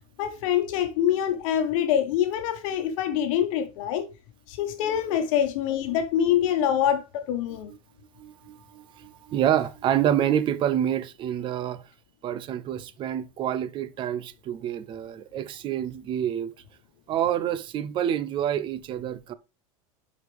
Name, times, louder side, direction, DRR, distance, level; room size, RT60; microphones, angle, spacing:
voice 1, 0.2-4.1 4.5-7.7, left 10 dB, 65° left, 1.2 m, -25 dB
voice 2, 8.2-11.8 12.2-16.5 17.1-19.3, right 10 dB, 30° right, 0.5 m, -27 dB
7.9 x 5.0 x 3.4 m
supercardioid pair, 155°, 18 cm